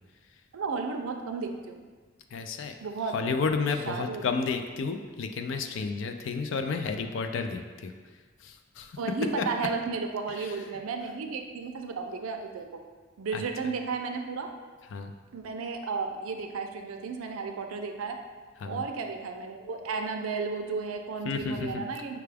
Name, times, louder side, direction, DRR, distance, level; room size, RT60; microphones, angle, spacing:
voice 1, 0.5-1.9 2.8-3.1 3.9-4.3 9.0-12.7 13.2-14.5 15.3-18.2 18.7-22.2, right 4 dB, 90° right, 5 dB, 0.4 m, -33 dB
voice 2, 2.3-2.7 3.1-7.9 8.4-9.0 9.4-9.5 10.3-10.6 13.3-13.4 14.9-15.1 18.6-18.8 21.3-21.8, left 4 dB, 60° left, 6 dB, 0.3 m, -31 dB
5.8 x 2.3 x 3.3 m, 1.4 s
head